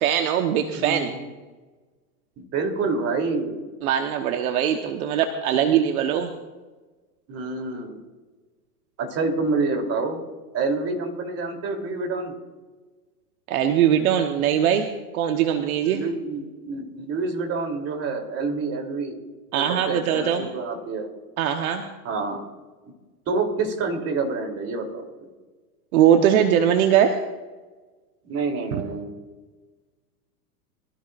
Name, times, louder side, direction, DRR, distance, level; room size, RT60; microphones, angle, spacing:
voice 1, 0.0-1.1 3.8-6.3 13.5-14.9 15.1-16.0 19.5-20.5 21.4-21.8 25.9-27.2 28.7-28.8, right 9 dB, 60° right, 5 dB, 1.3 m, -21 dB
voice 2, 0.7-1.3 2.4-3.6 7.3-8.0 9.0-10.2 10.5-12.3 15.8-19.2 19.6-21.1 22.0-22.4 23.3-25.0 28.2-29.1, right 3 dB, 30° right, 3 dB, 3.4 m, -27 dB
23.5 x 14.0 x 2.6 m, 1.3 s
hypercardioid pair, 120°, 48 cm